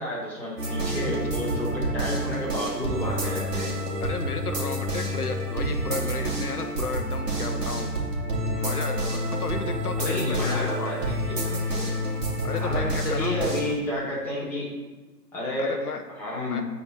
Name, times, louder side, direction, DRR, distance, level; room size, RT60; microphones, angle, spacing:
voice 1, 0.0-3.8 10.0-11.9 12.5-14.7 15.3-15.8 16.2-16.6, left 1 dB, 5° left, -7 dB, 1.0 m, -31 dB
sound 1, 0.6-13.8, equal, 70° right, 2.2 m, -28 dB
voice 2, 4.0-7.9 8.5-10.9 12.4-13.5 15.6-16.0 16.4-16.6, left 5 dB, 65° left, 7 dB, 0.7 m, -33 dB
8.4 x 4.3 x 4.2 m, 1.2 s
figure-of-eight pair, 130°, 50 cm